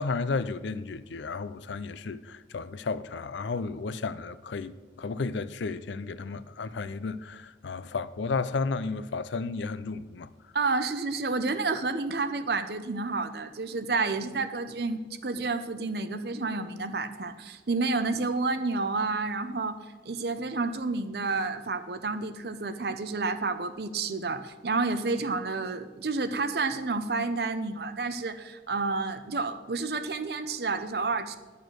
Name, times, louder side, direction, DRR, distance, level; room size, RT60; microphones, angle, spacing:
voice 1, 0.0-10.3, left 4 dB, 80° left, 0.5 m, -33 dB
voice 2, 10.5-31.4, right 3 dB, 60° right, 0.7 m, -30 dB
10.5 x 6.9 x 6.3 m
head